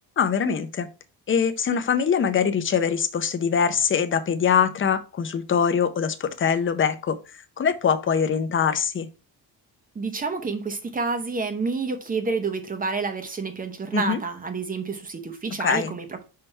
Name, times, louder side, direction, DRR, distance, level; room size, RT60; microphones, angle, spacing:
voice 1, 0.2-0.9 1.3-9.1 13.9-14.2 15.6-15.9, left 7 dB, 30° left, 0.6 m, -23 dB
voice 2, 9.9-16.2, right 4 dB, 20° right, 0.8 m, -29 dB
5.6 x 3.4 x 5.4 m
cardioid pair, 175°, 42 cm